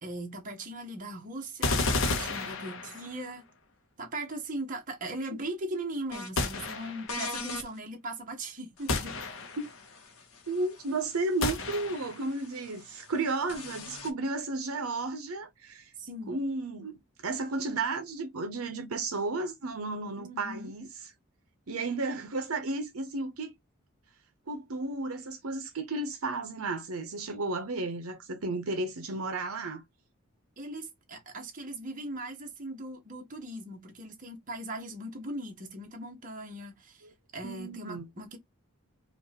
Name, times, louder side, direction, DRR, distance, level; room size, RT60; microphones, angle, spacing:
voice 1, 0.0-3.4 4.0-9.1 16.0-16.4 20.2-20.7 30.6-37.1 37.3-38.4, right 1 dB, 35° right, 1.2 m, -39 dB
sound 1, 1.6-3.3 6.4-7.2 8.9-9.8 11.4-12.3, left 3 dB, 60° left, 0.9 m, -31 dB
sound 2, 6.1-6.3 7.1-7.7 8.8-14.1, left 3 dB, 85° left, 1.2 m, -43 dB
voice 2, 10.5-15.9 16.3-21.1 21.7-23.5 24.5-29.8 37.4-38.1, right 3 dB, 75° right, 0.8 m, -33 dB
5.1 x 2.5 x 2.9 m
head